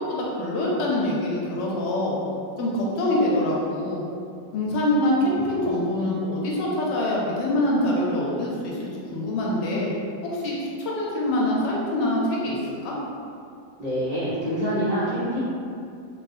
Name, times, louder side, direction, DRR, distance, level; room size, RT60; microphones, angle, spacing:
voice 1, 0.0-2.2 2.6-4.0 4.5-9.9 10.2-12.9, left 1 dB, 80° left, -4 dB, 1.2 m, -25 dB
voice 2, 13.8-15.4, equal, 80° right, -14 dB, 0.3 m, -26 dB
3.2 x 2.4 x 2.6 m, 2.5 s
omnidirectional pair, 1.9 m